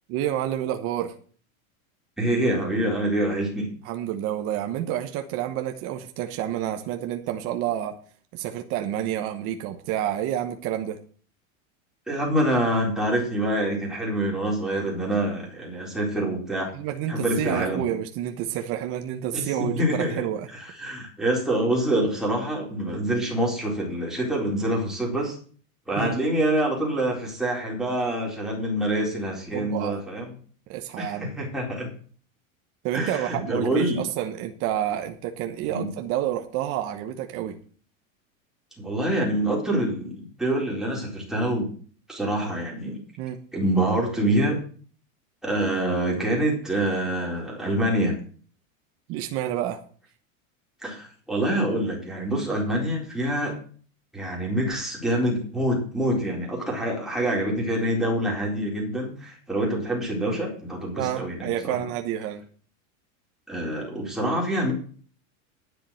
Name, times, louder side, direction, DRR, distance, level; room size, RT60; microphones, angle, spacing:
voice 1, 0.1-1.1 3.8-8.0 8.3-11.0 16.7-20.5 26.0-26.2 29.5-30.0 30.7-31.4 32.8-37.6 43.2-43.4 49.1-49.8 61.0-62.5, right 11 dB, 35° right, 6 dB, 1.1 m, -29 dB
voice 2, 2.2-3.7 12.1-16.7 17.1-17.9 19.3-20.2 20.5-25.4 25.9-30.3 31.0-31.9 32.9-34.0 35.7-35.9 38.8-41.7 42.1-43.0 43.5-44.6 45.4-48.2 50.8-53.6 54.1-61.8 63.5-64.7, right 1 dB, ahead, -3 dB, 4.2 m, -26 dB
10.5 x 7.4 x 7.6 m, 0.43 s
supercardioid pair, 165°, 41 cm